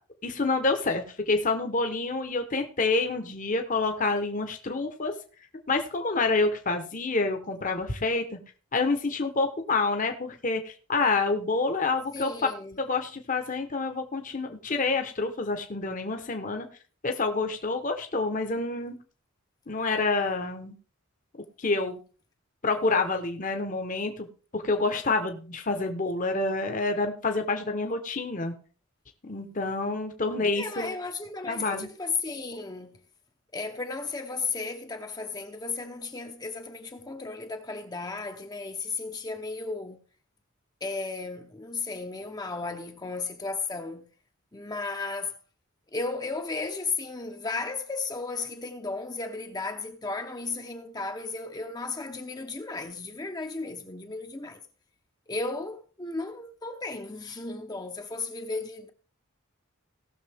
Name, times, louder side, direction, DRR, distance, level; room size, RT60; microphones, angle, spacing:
voice 1, 0.2-5.1 5.7-8.4 8.7-12.3 12.8-16.7 17.0-19.0 19.7-20.7 21.6-22.0 22.6-24.3 24.5-28.5 29.2-31.0 31.5-31.9, left 3 dB, 40° left, 1.1 m, -28 dB
voice 2, 12.1-12.8 30.5-33.0 33.5-40.0 40.8-44.1 44.5-45.4 45.9-54.6 55.3-58.9, left 3 dB, 20° left, 0.8 m, -34 dB
18.0 x 6.6 x 3.5 m
head